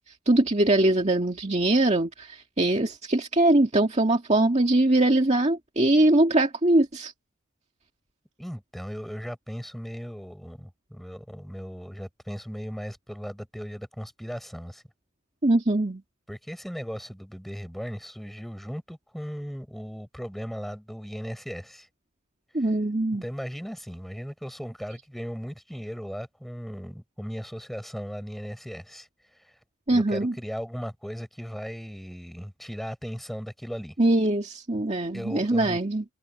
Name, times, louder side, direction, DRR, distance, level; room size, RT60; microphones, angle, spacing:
voice 1, 0.3-7.1 15.4-16.0 22.5-23.2 29.9-30.3 34.0-36.0, right 1 dB, 30° right, 2.0 m, -22 dB
voice 2, 8.4-14.8 16.3-21.9 23.2-29.1 29.4-29.5 29.9-33.9 35.1-35.8, equal, ahead, 7.6 m, -37 dB
head